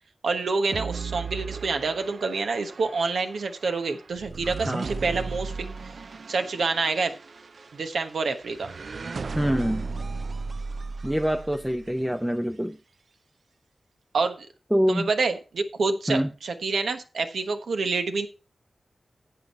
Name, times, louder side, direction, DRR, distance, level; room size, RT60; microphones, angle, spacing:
voice 1, 0.2-5.5 5.8-5.9 6.3-7.1 7.7-8.7 14.1-14.5 14.9-18.3, right 4 dB, 85° right, 1.2 m, -27 dB
sound 1, 0.7-12.0, right 4 dB, 60° right, 0.4 m, -36 dB
voice 2, 9.4-9.8 11.0-12.8 14.7-15.1 16.1-16.3, equal, 5° right, 0.5 m, -25 dB
11.0 x 7.9 x 4.3 m
wide cardioid pair, 80°, 0 cm